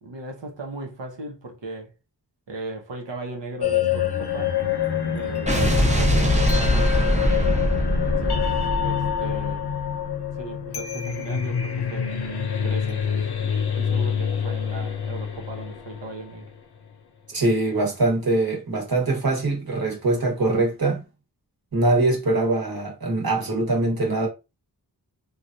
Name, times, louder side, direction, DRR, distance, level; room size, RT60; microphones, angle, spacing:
voice 1, 0.0-1.9 2.5-4.5 5.1-5.6 5.9-7.2 8.1-8.5 8.8-9.7 10.4-12.2 12.6-13.3 13.7-16.5, right 3 dB, 90° right, 0.9 m, -37 dB
sound 1, 3.6-16.6, left 8 dB, 65° left, 0.6 m, -26 dB
Explosion, 5.5-9.8, equal, 15° right, 0.7 m, -22 dB
voice 2, 17.3-21.0 21.7-24.3, right 2 dB, 55° right, 1.3 m, -23 dB
3.1 x 2.4 x 2.6 m
wide cardioid pair, 65°, 42 cm